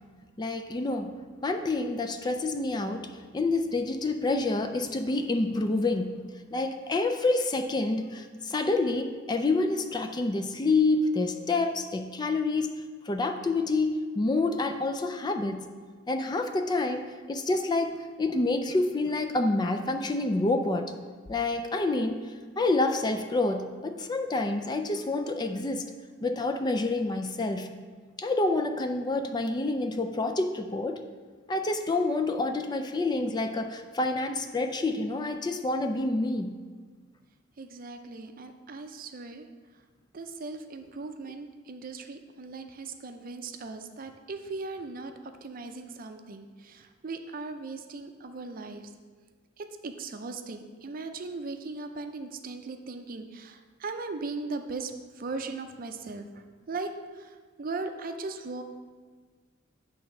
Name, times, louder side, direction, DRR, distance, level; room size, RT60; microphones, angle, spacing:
voice 1, 0.4-6.2 6.5-15.7 16.1-20.9 21.3-25.9 26.2-27.7 28.2-31.0 31.5-36.6, left 2 dB, 20° left, 6 dB, 0.4 m, -28 dB
voice 2, 37.6-39.5 40.1-45.1 45.4-48.9 49.6-58.6, right 3 dB, 45° right, 7 dB, 0.5 m, -38 dB
8.4 x 3.5 x 5.9 m, 1.5 s
head